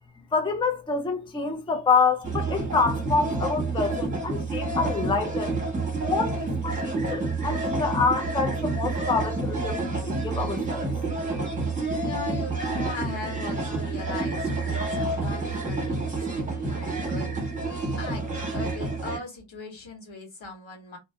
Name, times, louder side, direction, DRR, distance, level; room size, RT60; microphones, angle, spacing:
voice 1, 0.3-5.6 6.0-10.8, left 4 dB, 10° left, 0.4 m, -27 dB
sound 1, 2.2-19.2, right 3 dB, 15° right, 1.3 m, -29 dB
voice 2, 12.0-17.3 18.0-18.2 18.5-21.0, left 3 dB, 75° left, 1.4 m, -39 dB
2.6 x 2.6 x 2.3 m
wide cardioid pair, 85°, 47 cm